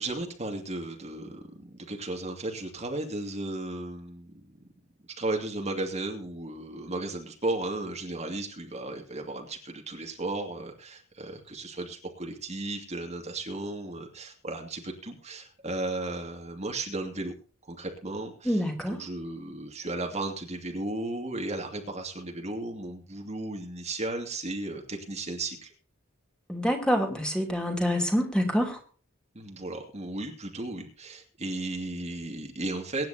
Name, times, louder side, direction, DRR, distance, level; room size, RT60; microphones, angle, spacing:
voice 1, 0.0-4.6 5.2-17.3 17.7-25.7 29.3-33.1, right 2 dB, 30° right, 2 dB, 2.4 m, -35 dB
voice 2, 18.5-19.0 26.5-28.8, equal, 5° left, 2 dB, 3.1 m, -26 dB
23.5 x 10.5 x 2.9 m, 0.39 s
head